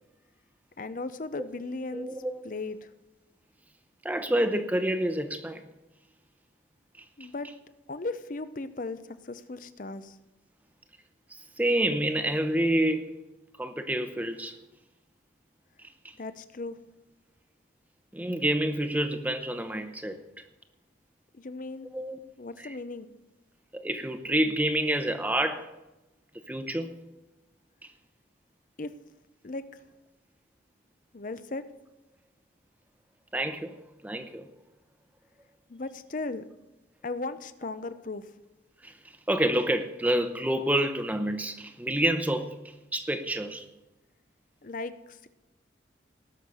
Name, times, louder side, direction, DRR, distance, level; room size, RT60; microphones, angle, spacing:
voice 1, 0.8-2.1 2.4-2.8 7.2-7.5 7.9-10.2 16.2-16.8 21.4-21.9 22.4-23.1 28.8-28.9 29.4-29.6 31.1-31.6 35.7-36.4 37.0-38.2 44.6-45.3, left 3 dB, 45° left, 12 dB, 0.6 m, -36 dB
voice 2, 1.9-2.4 4.0-5.6 7.0-7.1 11.3-13.2 13.6-14.6 16.0-16.1 18.1-20.2 21.9-22.2 22.6-22.8 23.7-25.7 26.5-27.0 33.3-33.8 34.0-34.5 38.8-38.9 39.3-42.6 42.9-43.7, right 1 dB, 10° right, 8 dB, 0.8 m, -28 dB
19.0 x 6.4 x 5.5 m, 1.0 s
head